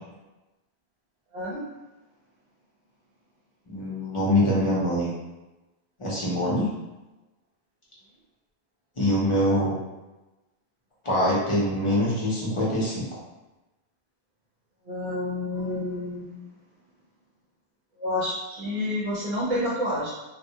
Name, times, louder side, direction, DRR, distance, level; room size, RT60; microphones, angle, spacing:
voice 1, 1.3-1.6 14.9-16.4 18.0-20.1, left 1 dB, 50° right, -8 dB, 0.7 m, -29 dB
voice 2, 3.7-5.1 6.0-6.7 9.0-9.8 11.0-13.1, left 1 dB, 35° left, -7 dB, 0.7 m, -24 dB
2.2 x 2.1 x 2.7 m, 1.1 s
omnidirectional pair, 1.1 m